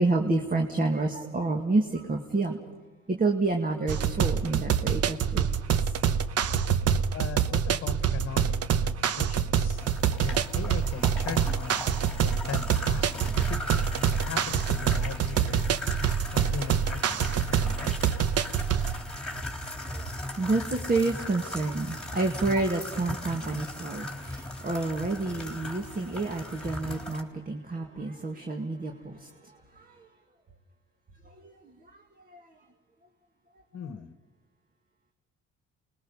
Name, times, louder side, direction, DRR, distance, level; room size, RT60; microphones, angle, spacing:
voice 1, 0.0-2.7 3.1-5.5 5.7-5.8 6.4-7.0 19.3-19.5 19.8-29.3 29.8-30.0 31.4-31.5 32.3-32.4, right 3 dB, 30° right, 3 dB, 2.0 m, -29 dB
sound 1, 3.9-19.0, right 8 dB, 55° right, 1.0 m, -26 dB
voice 2, 7.1-8.5 8.8-9.9 10.2-11.7 12.2-13.8 14.2-18.3 33.7-34.2, left 6 dB, 50° left, 10 dB, 1.4 m, -39 dB
sound 2, 9.7-27.2, left 1 dB, 5° left, 3.5 m, -38 dB
29.0 x 21.0 x 5.7 m, 1.3 s
cardioid pair, 90°, 29 cm